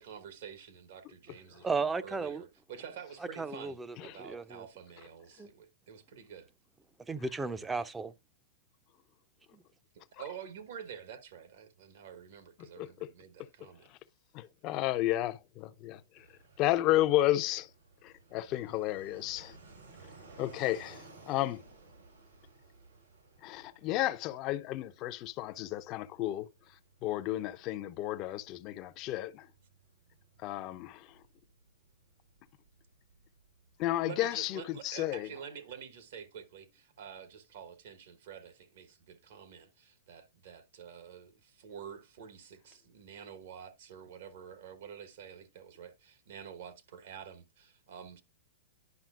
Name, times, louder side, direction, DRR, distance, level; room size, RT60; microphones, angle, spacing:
voice 1, 0.0-6.5 9.9-13.9 34.1-48.2, right 7 dB, 65° right, 1.3 m, -48 dB
voice 2, 1.6-2.4 3.4-4.6 5.4-5.5 7.1-8.1 9.5-9.6, right 4 dB, 10° right, 0.5 m, -35 dB
voice 3, 12.6-13.1 13.4-13.5 13.8-14.0 14.3-17.7 18.0-19.6 20.4-21.6 23.4-29.5 30.4-31.2 33.8-35.3, left 15 dB, 40° left, 0.5 m, -33 dB
Fixed-wing aircraft airplane, 16.1-34.5, right 3 dB, 85° right, 3.7 m, -58 dB
10.5 x 5.5 x 2.4 m
hypercardioid pair, 120°, 0 cm